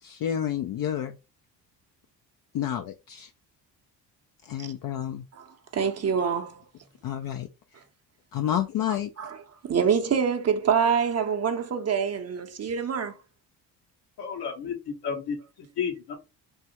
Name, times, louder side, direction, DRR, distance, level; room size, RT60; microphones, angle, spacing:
voice 1, 0.0-1.2 2.5-3.3 4.4-5.3 7.0-7.5 8.3-9.1, left 10 dB, 55° left, 0.5 m, -29 dB
voice 2, 5.7-6.6 9.2-9.4 9.6-13.2, right 7 dB, 35° right, 0.6 m, -25 dB
voice 3, 14.2-15.4 15.8-16.2, left 6 dB, 70° left, 1.1 m, -31 dB
3.5 x 2.0 x 2.9 m
supercardioid pair, 65°, 42 cm